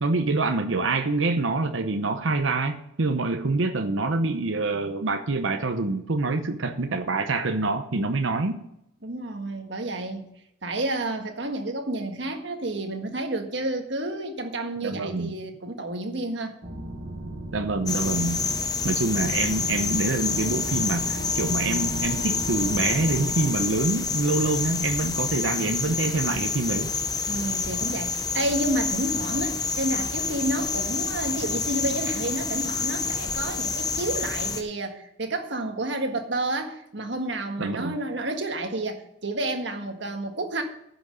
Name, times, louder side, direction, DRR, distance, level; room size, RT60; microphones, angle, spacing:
voice 1, 0.0-8.6 14.8-15.3 17.5-18.4 18.8-26.9 37.6-38.0, right 3 dB, 90° right, 0.9 m, -26 dB
voice 2, 9.0-10.2 10.6-16.6 27.3-40.6, right 1 dB, 65° right, 1.7 m, -30 dB
sound 1, 16.6-23.5, right 1 dB, 40° right, 1.7 m, -36 dB
sound 2, 17.9-34.6, left 4 dB, 20° left, 0.9 m, -28 dB
10.5 x 6.1 x 7.7 m
head